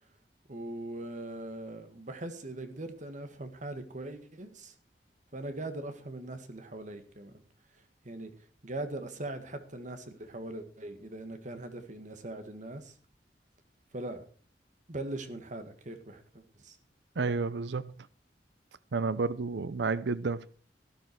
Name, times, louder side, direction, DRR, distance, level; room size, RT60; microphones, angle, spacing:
voice 1, 0.5-4.7 5.3-7.3 8.0-8.3 8.6-12.9 13.9-14.2 14.9-16.8, right 2 dB, 45° right, 1.9 m, -40 dB
voice 2, 17.2-17.9 18.9-20.5, right 4 dB, 75° right, 0.6 m, -31 dB
13.0 x 12.5 x 4.7 m
head